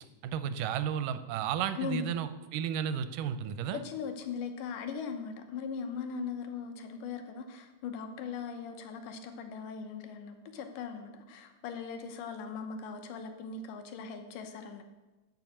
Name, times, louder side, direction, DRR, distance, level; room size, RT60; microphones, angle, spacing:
voice 1, 0.2-3.8, right 9 dB, 85° right, 11 dB, 2.2 m, -33 dB
voice 2, 1.8-2.1 3.7-14.8, left 5 dB, 85° left, 6 dB, 2.6 m, -39 dB
10.5 x 5.5 x 7.4 m, 1.1 s
omnidirectional pair, 3.8 m